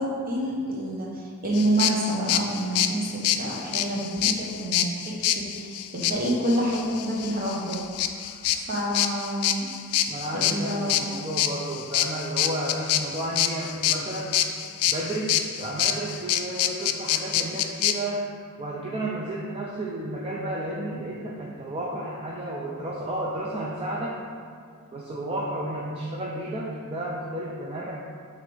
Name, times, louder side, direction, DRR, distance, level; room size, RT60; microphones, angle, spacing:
voice 1, 0.0-7.8 8.2-8.3 8.5-9.7 10.3-11.0, right 1 dB, 40° right, -3 dB, 1.2 m, -28 dB
sound 1, 1.5-17.9, left 11 dB, 75° left, 0.4 m, -26 dB
voice 2, 10.1-14.4 14.9-18.3 18.6-24.2 24.9-28.0, right 1 dB, 25° right, -4 dB, 0.5 m, -32 dB
8.1 x 3.2 x 3.9 m, 2.2 s
head